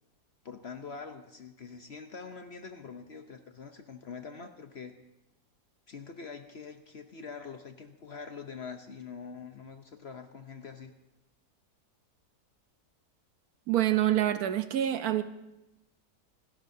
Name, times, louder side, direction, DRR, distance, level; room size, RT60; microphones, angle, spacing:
voice 1, 0.4-4.9 5.9-10.9, left 5 dB, 50° left, 7 dB, 0.9 m, -44 dB
voice 2, 13.7-15.2, right 12 dB, 70° right, 11 dB, 1.1 m, -26 dB
27.0 x 12.5 x 2.7 m, 0.95 s
omnidirectional pair, 1.7 m